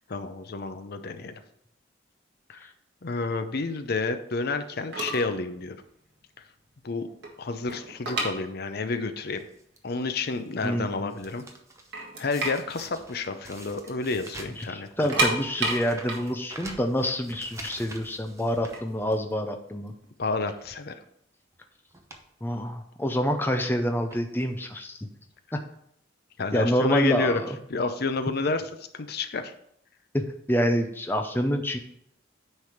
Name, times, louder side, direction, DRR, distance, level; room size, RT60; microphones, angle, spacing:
voice 1, 0.1-1.4 2.5-2.7 3.0-5.8 6.8-7.1 7.4-9.4 9.8-11.4 12.2-15.1 20.2-21.0 26.4-27.4 27.7-28.6 28.9-29.5, left 3 dB, 55° left, 9 dB, 0.6 m, -30 dB
sound 1, 4.9-5.4 5.6-5.9 6.4-6.5 6.8-9.0 9.3-9.4 10.0-10.1 10.5-11.2 11.6-11.7 11.9-13.9 14.2-14.3 14.9-17.8 18.5-20.3, right 2 dB, 60° right, 1.9 m, -31 dB
sound 2, 9.3-9.8 10.3-10.7 10.9-11.9 12.3-19.4 19.8-19.9 20.3-20.7 21.5-21.6 21.9-22.3 22.6-22.7 23.6-23.7 24.1-24.6 25.3-25.4 25.6-25.7, right 2 dB, 15° right, 0.8 m, -46 dB
voice 2, 10.6-11.1 14.6-19.9 22.4-25.1 26.5-27.5 30.1-31.8, equal, 10° left, 5 dB, 0.6 m, -27 dB
9.5 x 3.4 x 5.8 m, 0.72 s
head